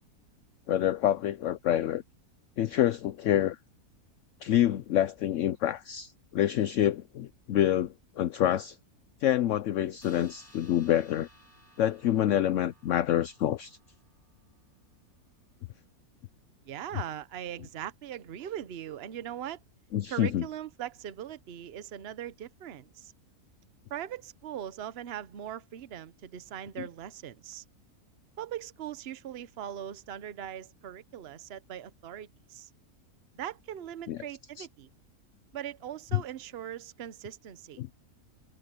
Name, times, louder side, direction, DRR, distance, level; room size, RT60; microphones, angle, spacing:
voice 1, 0.7-2.0 2.6-3.6 4.4-8.8 9.2-11.3 11.8-13.8 19.9-20.4 34.1-34.2 34.6-34.7 36.1-36.2 37.8-37.9, left 11 dB, 65° left, 0.9 m, -27 dB
sound 1, 10.0-14.9, equal, 35° left, 5.7 m, -60 dB
voice 2, 16.6-19.6 20.1-23.1 23.9-27.6 28.4-32.7 33.3-34.9 35.5-37.8, right 10 dB, 50° right, 0.9 m, -40 dB
omnidirectional pair, 1.6 m